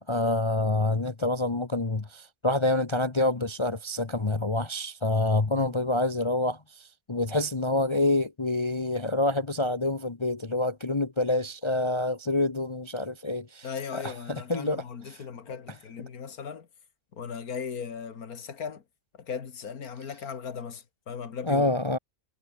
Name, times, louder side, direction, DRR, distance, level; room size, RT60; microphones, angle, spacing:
voice 1, 0.0-15.2 21.4-22.0, left 2 dB, 20° left, 0.9 m, -27 dB
voice 2, 13.6-16.7 17.1-18.8 19.2-21.7, left 6 dB, 80° left, 2.1 m, -37 dB
omnidirectional pair, 1.6 m